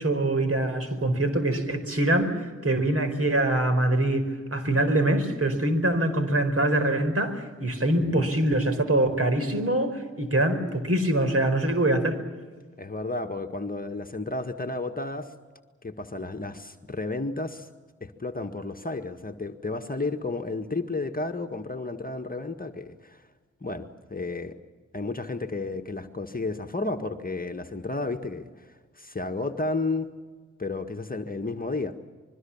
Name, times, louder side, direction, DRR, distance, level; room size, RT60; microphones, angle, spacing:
voice 1, 0.0-12.2, right 1 dB, 45° right, 9 dB, 4.6 m, -24 dB
voice 2, 7.9-8.2 12.8-15.3 15.8-17.7 18.0-23.2 23.6-24.5 24.9-30.1 30.6-31.9, left 3 dB, 25° left, 6 dB, 1.7 m, -32 dB
25.0 x 22.5 x 7.3 m, 1.5 s
supercardioid pair, 40°, 33 cm